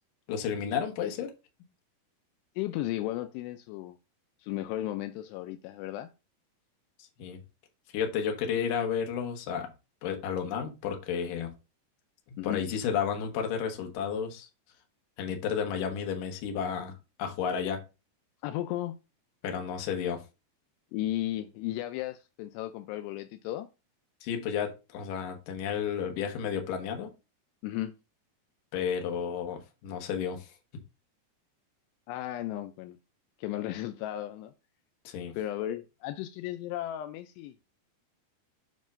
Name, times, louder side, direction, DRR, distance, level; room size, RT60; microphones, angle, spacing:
voice 1, 0.3-1.3 7.2-7.4 7.9-9.7 10.0-11.5 12.3-14.5 15.2-16.9 17.2-17.8 19.4-20.2 24.2-27.1 28.7-30.5 35.0-35.4, left 7 dB, 65° left, 2.3 m, -32 dB
voice 2, 2.6-4.0 4.4-6.1 12.4-12.6 18.4-19.0 20.9-23.7 27.6-27.9 32.1-33.0 33.4-34.5 35.4-37.5, left 14 dB, 85° left, 2.6 m, -35 dB
7.4 x 5.3 x 2.5 m
omnidirectional pair, 4.9 m